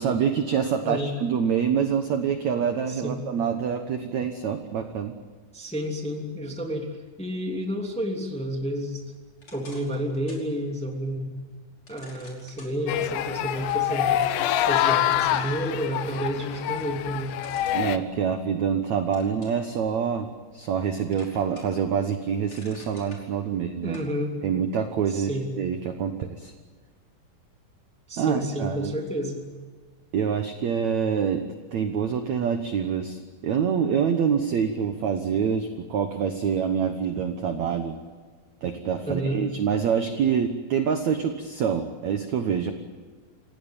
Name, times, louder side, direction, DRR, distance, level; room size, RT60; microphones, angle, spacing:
voice 1, 0.0-5.1 17.7-24.0 24.4-26.5 28.2-28.9 30.1-31.4 31.7-38.0 38.6-42.7, right 7 dB, 70° right, 7 dB, 1.7 m, -26 dB
voice 2, 0.8-1.1 2.9-3.2 5.5-6.9 7.2-9.0 9.5-11.3 11.9-14.2 14.7-17.4 23.5-24.4 25.1-25.5 28.1-29.4 39.0-39.4, equal, ahead, 2 dB, 1.7 m, -30 dB
sound 1, 9.4-10.5 10.9-11.0 11.9-12.7 14.5-14.6 15.1-16.2 17.4-18.7 19.1-19.6 20.2-20.8 21.1-21.9 22.2-23.2 23.9-24.1, left 2 dB, 30° left, 5.6 m, -48 dB
sound 2, 12.9-18.0, left 12 dB, 80° left, 3.1 m, -26 dB
28.5 x 17.0 x 9.0 m, 1.5 s
omnidirectional pair, 4.9 m